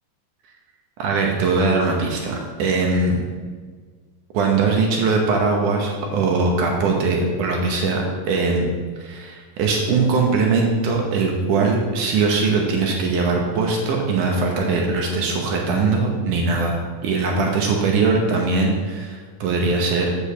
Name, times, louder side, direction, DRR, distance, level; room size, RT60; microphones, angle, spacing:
voice 1, 1.0-3.2 4.3-8.7 9.0-20.2, right 4 dB, 70° right, 0 dB, 2.3 m, -21 dB
8.3 x 5.3 x 7.0 m, 1.5 s
omnidirectional pair, 4.1 m